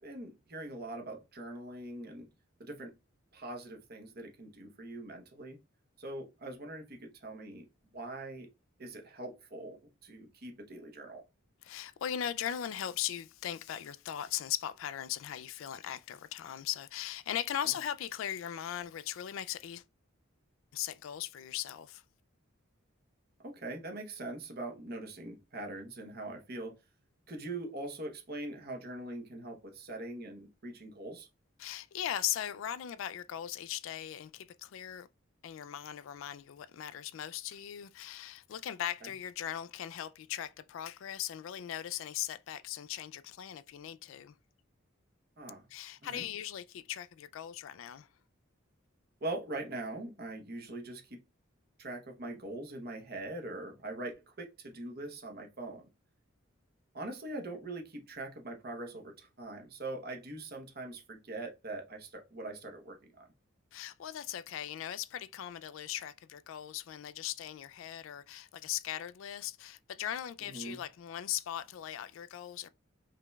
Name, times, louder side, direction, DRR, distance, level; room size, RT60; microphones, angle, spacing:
voice 1, 0.0-2.3 2.6-2.9 3.3-5.6 6.0-7.6 7.9-8.5 8.8-11.2 23.4-26.8 27.3-31.3 39.0-39.1 45.4-45.6 46.0-46.3 49.2-51.2 51.8-55.9 56.9-63.3 70.4-70.8, right 2 dB, 50° right, 1.0 m, -42 dB
voice 2, 11.6-19.8 20.7-22.0 31.6-35.1 35.4-44.3 45.7-48.1 63.7-72.7, left 11 dB, 70° left, 0.3 m, -39 dB
5.0 x 3.2 x 2.3 m
head